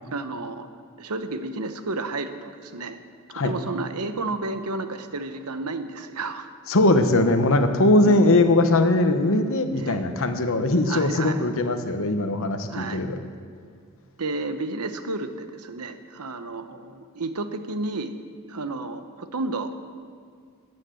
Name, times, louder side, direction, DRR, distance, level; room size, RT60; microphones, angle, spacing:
voice 1, 0.1-0.7 1.0-3.0 3.4-6.5 8.0-8.3 9.8-10.0 10.9-11.4 12.7-13.0 14.2-18.2 18.5-19.7, right 3 dB, 85° right, 9 dB, 1.0 m, -31 dB
voice 2, 6.7-13.1, left 2 dB, 65° left, 8 dB, 1.1 m, -20 dB
13.5 x 9.8 x 7.7 m, 2.2 s
head